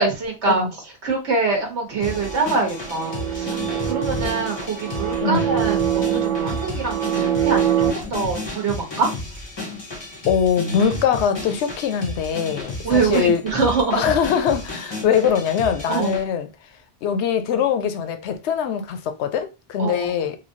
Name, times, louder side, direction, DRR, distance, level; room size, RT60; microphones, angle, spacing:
voice 1, 0.0-9.1 12.8-14.1 15.9-16.2 19.8-20.1, right 4 dB, 75° right, 1.2 m, -24 dB
sound 1, 2.0-16.2, left 2 dB, 30° left, 0.7 m, -32 dB
sound 2, 2.0-7.9, right 10 dB, 55° right, 0.3 m, -24 dB
voice 2, 10.3-13.4 13.9-16.5 17.0-20.4, left 7 dB, 75° left, 0.8 m, -22 dB
3.1 x 2.6 x 2.6 m
omnidirectional pair, 1.2 m